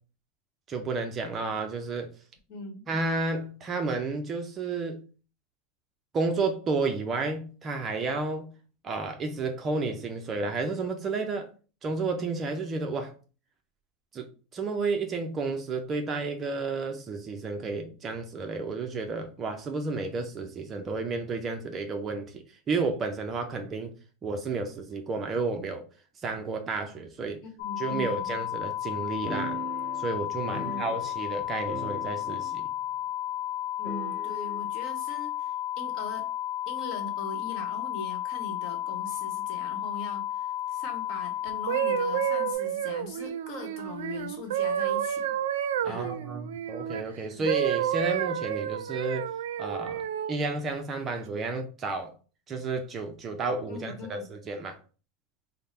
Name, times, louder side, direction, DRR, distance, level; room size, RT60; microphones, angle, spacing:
voice 1, 0.7-2.1 2.9-5.0 6.1-8.5 8.8-11.5 11.8-13.1 14.1-23.9 24.2-25.9 26.2-27.4 27.8-29.6 30.0-32.7 45.8-49.3 49.6-50.0 50.3-52.1 52.5-54.8, right 3 dB, 20° right, 0.4 m, -31 dB
voice 2, 2.5-2.9 27.4-28.3 30.5-30.8 33.8-36.3 36.7-45.4 45.8-46.1 47.3-47.5 53.7-54.2, left 3 dB, 40° left, 1.0 m, -41 dB
sound 1, 27.6-42.5, left 12 dB, 85° left, 0.5 m, -33 dB
sound 2, 29.3-31.4 31.6-32.7 32.9-33.0 33.8-34.6, right 2 dB, 15° left, 1.2 m, -40 dB
sound 3, 41.5-47.0 47.5-50.3 51.0-51.3, right 10 dB, 90° right, 0.4 m, -30 dB
3.6 x 2.0 x 4.2 m
supercardioid pair, 160°, 0 cm